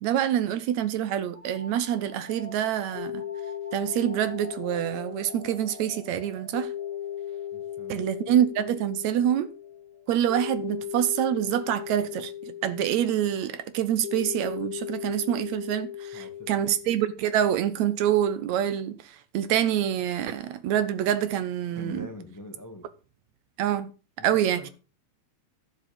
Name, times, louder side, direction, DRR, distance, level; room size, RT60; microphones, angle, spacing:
voice 1, 0.0-3.2 3.7-6.7 7.9-9.5 10.1-19.0 19.3-22.1 23.6-23.9 24.2-24.7, right 10 dB, 75° right, 2.0 m, -26 dB
sound 1, 1.3-10.7, left 2 dB, 55° right, 6.9 m, -49 dB
sound 2, 3.0-17.2, left 10 dB, 75° left, 2.2 m, -37 dB
voice 2, 7.5-8.1 16.1-16.5 21.7-22.9 24.2-24.7, left 1 dB, 15° left, 0.6 m, -43 dB
11.5 x 7.4 x 5.2 m
omnidirectional pair, 3.4 m